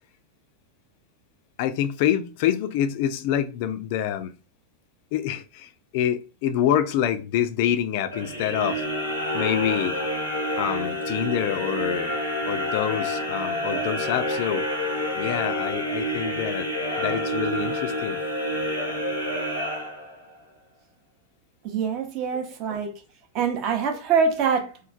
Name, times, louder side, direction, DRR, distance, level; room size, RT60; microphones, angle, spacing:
voice 1, 1.6-4.3 5.1-8.8 9.3-10.0 10.5-12.1 12.5-14.6 15.2-16.7 17.0-18.2, left 10 dB, 50° left, 0.3 m, -26 dB
sound 1, 8.1-20.4, equal, 85° right, 1.0 m, -28 dB
voice 2, 21.6-22.9 23.3-24.7, right 6 dB, 40° right, 0.6 m, -24 dB
3.0 x 2.0 x 2.5 m
figure-of-eight pair, 90°, 0 cm